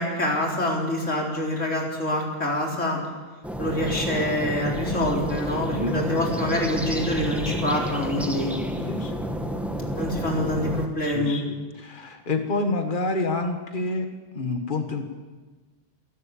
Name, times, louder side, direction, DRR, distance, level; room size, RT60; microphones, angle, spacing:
voice 1, 0.0-3.0 3.6-8.5 10.0-11.4, left 1 dB, 80° left, -1 dB, 4.5 m, -26 dB
sound 1, 3.4-10.9, equal, ahead, 1.9 m, -30 dB
voice 2, 8.9-9.2 11.0-14.1 14.3-15.1, left 3 dB, 45° left, 5 dB, 1.9 m, -28 dB
27.0 x 12.0 x 8.6 m, 1.3 s
omnidirectional pair, 1.3 m